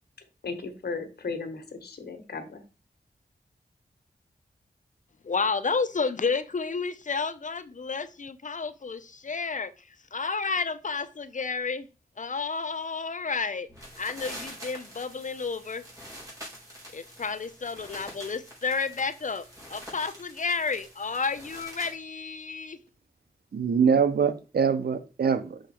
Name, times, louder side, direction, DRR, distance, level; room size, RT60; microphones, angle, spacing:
voice 1, 0.4-2.6, left 4 dB, 85° left, 1.3 m, -36 dB
voice 2, 5.2-11.9 12.2-13.7 14.0-15.8 16.9-22.8, left 4 dB, 50° left, 0.7 m, -31 dB
sound 1, 13.7-22.0, equal, 20° right, 4.6 m, -45 dB
voice 3, 23.5-25.6, right 6 dB, 80° right, 0.8 m, -24 dB
6.1 x 5.2 x 4.4 m
wide cardioid pair, 70°, 16 cm